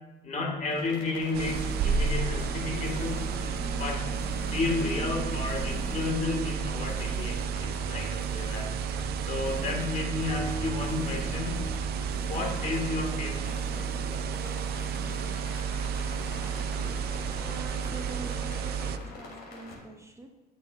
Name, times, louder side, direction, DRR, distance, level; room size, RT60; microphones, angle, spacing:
voice 1, 0.2-3.3 3.8-8.8 9.3-11.7 12.2-13.7, left 3 dB, 45° left, 2 dB, 1.6 m, -32 dB
sound 1, 0.7-19.8, left 2 dB, 75° left, 2.9 m, -45 dB
sound 2, 1.2-18.4, left 3 dB, 15° left, 0.5 m, -45 dB
sound 3, 1.3-19.0, right 6 dB, 70° right, 0.5 m, -32 dB
voice 2, 17.3-20.3, right 2 dB, 15° right, 3 dB, 0.8 m, -45 dB
13.5 x 6.5 x 2.4 m, 1.1 s
cardioid pair, 110°, 17 cm